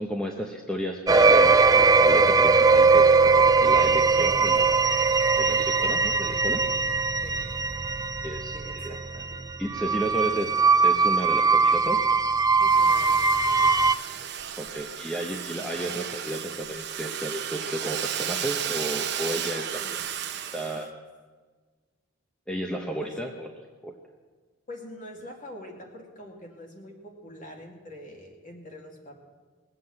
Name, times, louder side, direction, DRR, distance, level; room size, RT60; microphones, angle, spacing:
voice 1, 0.0-4.7 5.4-6.6 8.2-8.9 9.6-12.1 14.6-19.8 20.5-20.9 22.5-23.5 23.8-23.9, right 1 dB, 5° left, 1 dB, 0.7 m, -33 dB
sound 1, 1.1-13.9, right 4 dB, 15° right, 0.4 m, -20 dB
voice 2, 8.5-9.5 12.6-14.2 19.8-20.0 23.0-23.1 24.7-29.2, left 1 dB, 35° left, 1 dB, 2.4 m, -44 dB
Domestic sounds home sounds, 12.6-20.8, right 9 dB, 50° right, 0.9 m, -34 dB
19.5 x 7.7 x 7.7 m, 1.4 s
head